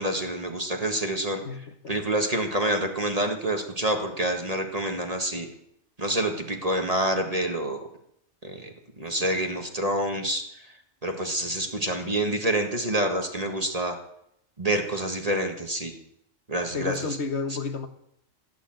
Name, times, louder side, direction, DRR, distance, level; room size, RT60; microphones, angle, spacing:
voice 1, 0.0-1.4 1.9-5.5 6.0-7.8 8.4-8.7 9.0-10.4 11.0-14.0 14.6-15.9 16.5-17.1, right 1 dB, 30° right, 3 dB, 1.7 m, -27 dB
voice 2, 1.4-2.0 9.2-9.3 16.7-17.9, left 4 dB, 60° left, 8 dB, 1.5 m, -31 dB
17.0 x 9.5 x 7.8 m, 0.76 s
omnidirectional pair, 1.3 m